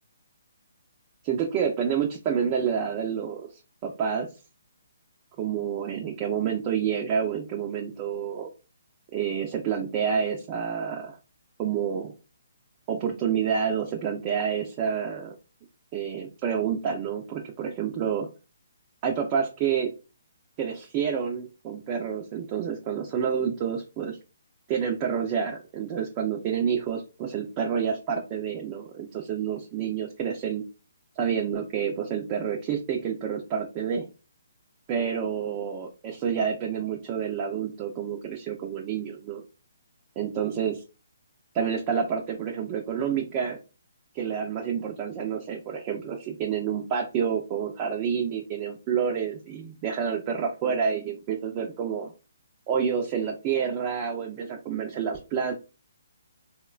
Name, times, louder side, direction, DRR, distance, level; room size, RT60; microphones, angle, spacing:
voice 1, 1.2-3.5 3.8-4.3 5.4-8.5 9.1-11.2 11.6-12.1 12.9-15.3 15.9-18.3 19.0-19.9 20.6-24.2 24.7-30.6 31.2-34.1 34.9-39.4 40.2-40.8 41.5-43.6 44.1-52.1 52.7-55.5, right 7 dB, 25° right, 1 dB, 0.4 m, -28 dB
3.6 x 2.1 x 2.3 m, 0.32 s
hypercardioid pair, 155°, 0 cm